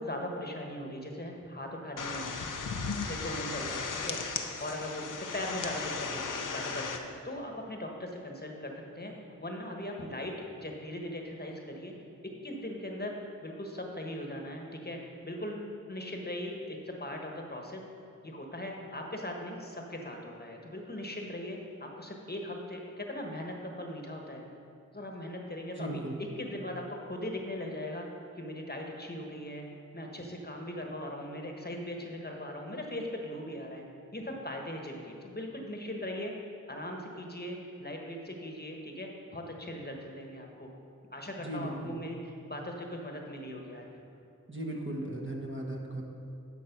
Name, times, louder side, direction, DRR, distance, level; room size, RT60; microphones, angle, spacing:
voice 1, 0.0-2.3 3.0-5.0 5.3-9.1 9.4-10.3 10.6-11.9 12.4-13.1 13.4-15.0 15.2-17.8 18.2-24.4 24.9-26.0 26.4-28.0 28.3-29.6 29.9-33.8 34.1-36.3 36.7-40.7 41.1-43.9, left 1 dB, 30° left, 1 dB, 1.2 m, -39 dB
sound 1, 2.0-7.0, left 5 dB, 80° left, 0.7 m, -36 dB
voice 2, 25.8-26.2 41.4-42.0 44.5-46.0, right 1 dB, 40° right, -1 dB, 1.4 m, -37 dB
11.5 x 4.5 x 5.9 m, 2.5 s
wide cardioid pair, 55°, 32 cm